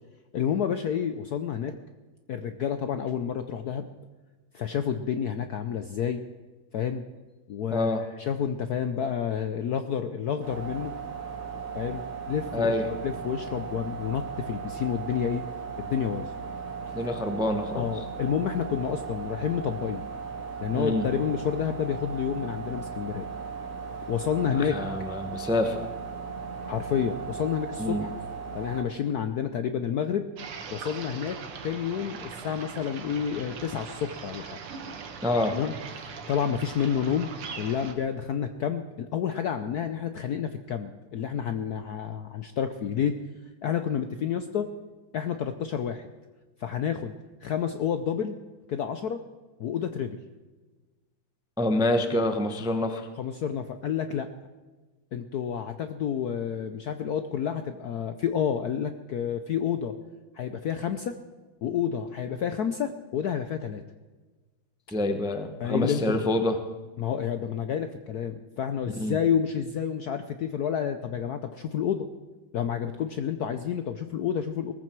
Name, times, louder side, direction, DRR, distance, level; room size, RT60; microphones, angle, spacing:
voice 1, 0.3-1.7 2.3-3.9 4.5-6.2 6.7-7.0 7.5-10.9 11.7-15.4 15.8-16.3 17.0-17.1 17.8-20.1 20.6-23.3 24.1-24.8 26.6-28.1 28.5-30.3 30.7-34.6 35.5-35.7 36.3-43.2 43.6-44.7 45.1-46.1 46.6-47.1 47.4-48.4 48.7-49.2 49.6-50.2 53.2-54.3 55.1-59.9 60.3-61.2 61.6-63.8 65.6-66.2 67.0-72.1 72.5-74.7, left 8 dB, 70° left, 9 dB, 0.9 m, -29 dB
voice 2, 7.7-8.0 12.5-12.8 16.9-17.9 20.7-21.0 24.7-25.9 27.8-28.1 35.2-35.6 51.6-53.1 64.9-66.6 69.0-69.2, left 1 dB, 5° right, 6 dB, 0.5 m, -26 dB
sound 1, 10.4-28.8, right 6 dB, 40° right, 2.9 m, -37 dB
sound 2, 30.4-38.0, right 6 dB, 85° right, 2.2 m, -40 dB
18.5 x 14.5 x 4.6 m, 1.3 s
omnidirectional pair, 2.4 m